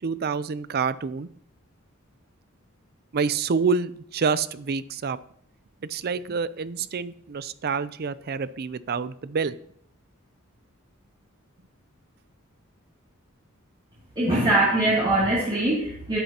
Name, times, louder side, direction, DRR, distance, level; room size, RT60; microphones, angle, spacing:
voice 1, 0.0-1.3 3.1-5.2 5.8-9.6, right 5 dB, 45° right, 16 dB, 0.5 m, -27 dB
voice 2, 14.2-16.2, right 1 dB, 25° right, -7 dB, 2.6 m, -22 dB
11.5 x 10.5 x 2.9 m, 0.64 s
head